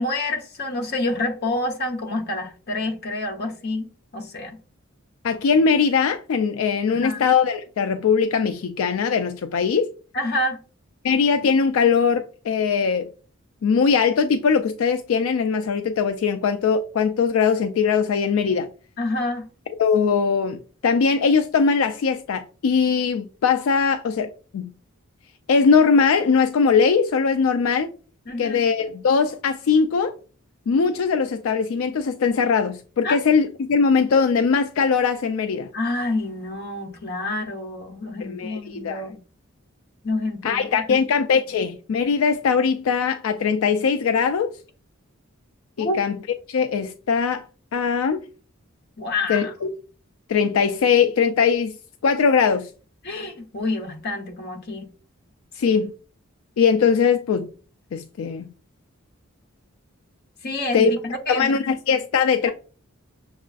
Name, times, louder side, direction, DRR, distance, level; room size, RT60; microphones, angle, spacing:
voice 1, 0.0-3.9 4.1-4.6 6.9-7.2 10.1-10.6 19.0-19.5 28.3-28.6 33.0-33.2 35.7-39.2 40.0-40.8 45.8-46.0 49.0-49.5 53.0-54.9 55.6-55.8 60.4-61.5 62.4-62.5, left 2 dB, 50° left, 0.9 m, -28 dB
voice 2, 5.2-9.9 11.0-13.1 13.6-18.7 19.8-24.7 25.5-27.9 28.4-30.1 30.7-35.7 38.2-39.0 40.4-44.5 45.8-46.2 46.5-47.5 47.7-48.2 49.3-49.7 50.3-51.7 52.0-52.7 55.6-55.9 56.6-57.5 57.9-58.4 60.7-60.9 61.3-62.5, left 5 dB, 80° left, 0.4 m, -20 dB
6.5 x 2.4 x 2.4 m
head